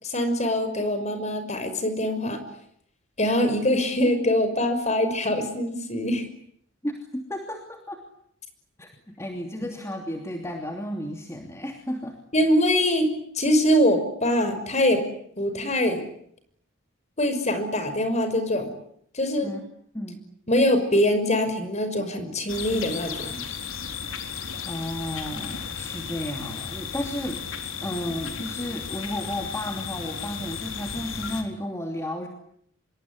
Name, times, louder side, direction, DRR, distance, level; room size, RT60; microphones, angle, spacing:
voice 1, 0.0-2.4 3.2-6.3 12.3-15.0 15.4-16.0 17.2-18.7 19.1-19.5 20.5-23.4, left 1 dB, 35° left, 9 dB, 6.0 m, -23 dB
voice 2, 6.8-8.0 8.8-12.2 19.4-19.6 19.9-20.2 24.6-32.3, left 1 dB, 15° left, 3 dB, 2.9 m, -33 dB
sound 1, 22.5-31.4, left 6 dB, 80° left, 4.1 m, -34 dB
26.5 x 22.5 x 9.9 m, 0.68 s
head